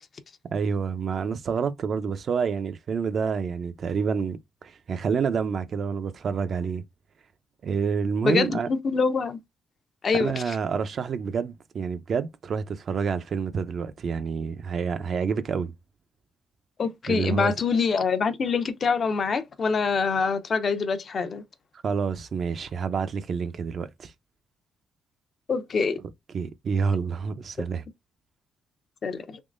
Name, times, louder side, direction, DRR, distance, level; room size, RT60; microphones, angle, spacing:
voice 1, 0.5-6.8 7.6-8.7 10.1-15.7 17.1-17.5 21.8-24.1 26.3-27.8, right 6 dB, 50° right, 0.5 m, -28 dB
voice 2, 8.2-9.4 10.0-10.6 16.8-21.4 25.5-26.0 29.0-29.4, left 5 dB, 45° left, 0.6 m, -25 dB
3.6 x 3.0 x 2.5 m
cardioid pair, 90°, 0 cm